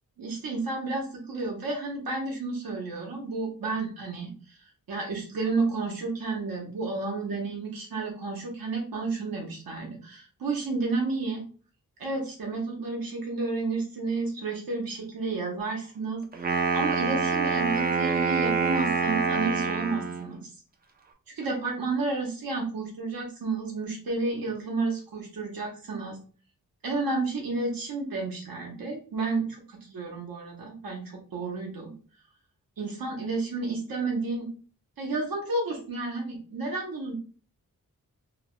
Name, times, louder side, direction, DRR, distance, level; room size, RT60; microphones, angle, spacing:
voice 1, 0.2-4.6 4.9-11.4 12.0-16.2 16.7-20.5 21.3-26.2 26.8-31.9 32.8-34.5 35.0-37.2, right 3 dB, 75° right, -1 dB, 0.8 m, -31 dB
Wind instrument woodwind instrument, 16.3-20.3, right 4 dB, 30° right, 0.3 m, -26 dB
2.8 x 2.1 x 3.0 m, 0.39 s
wide cardioid pair, 140°, 35 cm